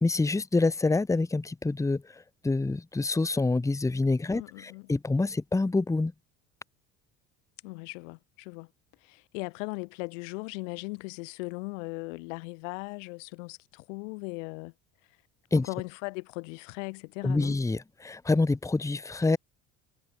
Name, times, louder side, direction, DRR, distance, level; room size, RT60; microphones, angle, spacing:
voice 1, 0.0-2.0 2.4-6.1 15.5-15.7 17.2-19.4, left 3 dB, 10° left, 0.9 m, -26 dB
voice 2, 4.3-4.9 7.6-8.7 9.0-14.7 15.5-17.6, left 30 dB, 85° left, 1.2 m, -38 dB
supercardioid pair, 90°, 36 cm